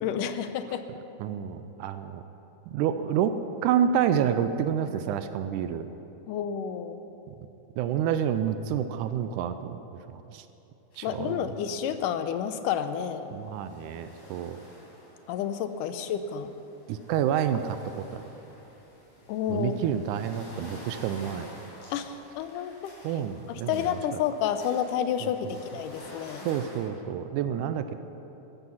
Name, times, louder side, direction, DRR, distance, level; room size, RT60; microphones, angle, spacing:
voice 1, 0.0-0.8 6.3-7.0 11.0-13.4 15.3-16.5 19.3-19.7 21.9-22.9 23.5-26.5, left 9 dB, 85° left, 10 dB, 2.3 m, -30 dB
voice 2, 1.2-2.2 2.7-5.9 7.3-7.4 7.8-9.8 10.1-10.4 11.0-11.5 13.3-14.6 16.9-17.8 18.1-18.2 19.5-21.5 23.0-24.0 25.2-25.5 26.5-28.0, right 9 dB, 80° right, 10 dB, 2.0 m, -28 dB
sound 1, 10.9-11.2 11.5-12.1 12.5-12.6 13.2-26.8, equal, 55° left, 5.3 m, -50 dB
14.0 x 13.5 x 5.7 m, 3.0 s
omnidirectional pair, 3.7 m